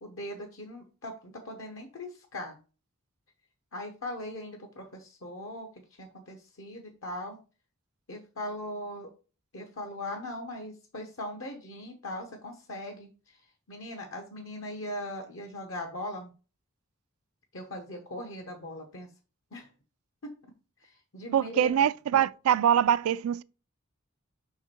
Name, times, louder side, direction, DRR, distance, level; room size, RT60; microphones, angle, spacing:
voice 1, 0.0-2.6 3.7-5.7 6.0-7.4 8.1-9.1 9.5-13.4 13.7-16.3 17.5-19.1 19.5-19.7 20.2-20.3 20.8-21.7, left 1 dB, 65° left, 0.9 m, -39 dB
voice 2, 21.3-23.4, right 9 dB, 90° right, 0.3 m, -24 dB
5.3 x 4.7 x 4.4 m
head